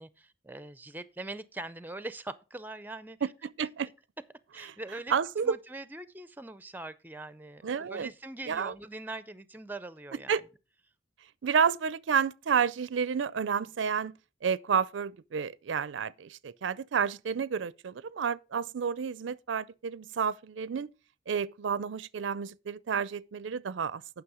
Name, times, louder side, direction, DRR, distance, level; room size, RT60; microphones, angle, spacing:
voice 1, 0.0-3.3 4.5-5.1 5.4-10.4, right 2 dB, 10° right, 0.5 m, -42 dB
voice 2, 5.1-5.6 7.6-8.1 8.5-8.7 10.3-10.4 11.4-14.2 14.4-20.9 21.3-24.0, right 6 dB, 90° right, 0.4 m, -30 dB
9.7 x 6.0 x 4.9 m
head